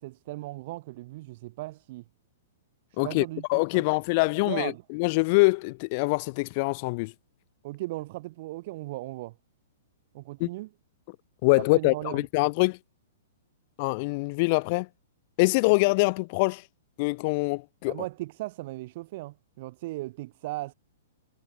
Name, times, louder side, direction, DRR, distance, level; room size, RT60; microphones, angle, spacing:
voice 1, 0.0-2.0 2.9-3.8 4.4-4.8 7.6-9.3 10.1-10.7 11.7-12.2 17.9-20.7, right 19 dB, 50° right, 1.4 m, -37 dB
voice 2, 3.5-7.1 10.4-10.5 11.4-12.8 13.8-14.9 15.4-16.6 17.0-18.0, left 27 dB, 45° left, 2.2 m, -24 dB
hypercardioid pair, 115°, 0 cm